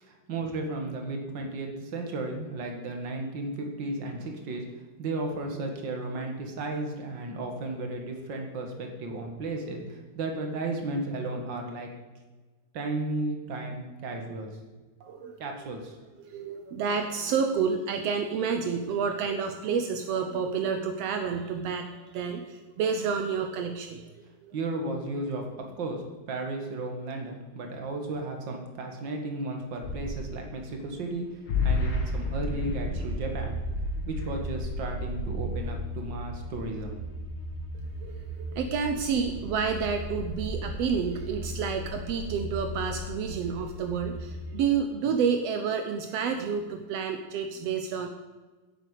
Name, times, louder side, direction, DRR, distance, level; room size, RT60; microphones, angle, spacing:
voice 1, 0.0-4.6 5.0-11.9 12.7-14.5 15.4-16.0 24.5-25.4 25.8-31.3 31.6-33.6 34.0-37.0, right 2 dB, 40° right, 3 dB, 1.9 m, -34 dB
voice 2, 15.0-15.4 16.2-24.1 24.4-24.5 38.0-48.1, right 6 dB, 80° right, 6 dB, 1.4 m, -29 dB
sound 1, 29.8-31.2 31.5-44.6, left 1 dB, 60° left, 3.3 m, -34 dB
10.5 x 8.1 x 8.1 m, 1.3 s
omnidirectional pair, 3.9 m